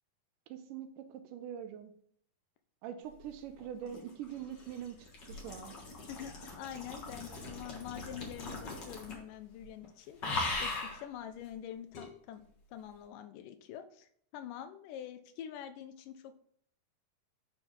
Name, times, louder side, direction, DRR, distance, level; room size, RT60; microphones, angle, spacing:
voice 1, 0.5-1.9 2.8-5.7, right 9 dB, 80° right, 8 dB, 2.2 m, -43 dB
sound 1, 3.6-9.3 9.6-9.9 10.2-11.0 11.9-12.1, left 3 dB, 45° left, 1.5 m, -40 dB
voice 2, 6.1-10.2 10.6-12.4 12.7-16.4, left 10 dB, 75° left, 8 dB, 2.3 m, -46 dB
9.8 x 4.5 x 3.8 m, 0.64 s
omnidirectional pair, 4.0 m